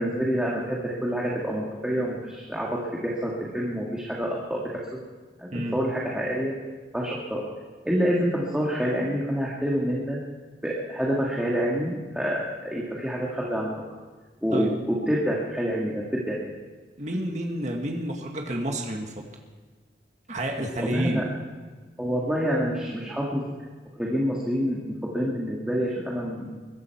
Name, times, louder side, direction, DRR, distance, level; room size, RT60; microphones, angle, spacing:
voice 1, 0.0-5.0 5.4-6.5 6.9-7.4 7.8-10.2 10.6-13.8 14.4-16.4 17.1-17.2 20.8-21.2 22.0-23.5 24.0-26.5, equal, 5° right, -5 dB, 1.9 m, -27 dB
voice 2, 17.0-19.2 20.3-21.3, right 1 dB, 40° right, 1 dB, 1.9 m, -29 dB
22.0 x 12.0 x 4.6 m, 1.4 s
head